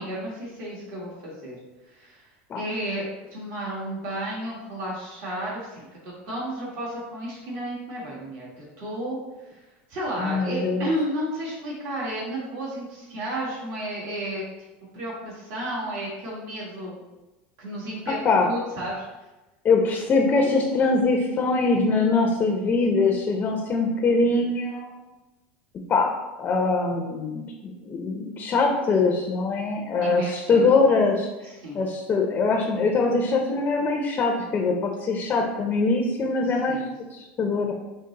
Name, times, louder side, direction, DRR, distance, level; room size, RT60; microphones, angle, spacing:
voice 1, 0.0-1.6 1.8-2.3 2.5-3.0 3.3-9.6 9.9-14.4 14.9-17.0 17.6-18.2 18.5-19.0 20.4-21.0 30.0-30.7 31.4-31.8 35.4-35.5 36.7-36.9, right 1 dB, 55° right, -6 dB, 1.4 m, -32 dB
voice 2, 10.2-10.9 18.1-18.5 19.6-24.9 25.9-26.1 26.4-31.3 31.7-36.8 37.1-37.7, left 3 dB, 30° left, 2 dB, 0.5 m, -23 dB
5.0 x 2.0 x 3.9 m, 1.1 s
supercardioid pair, 115°, 6 cm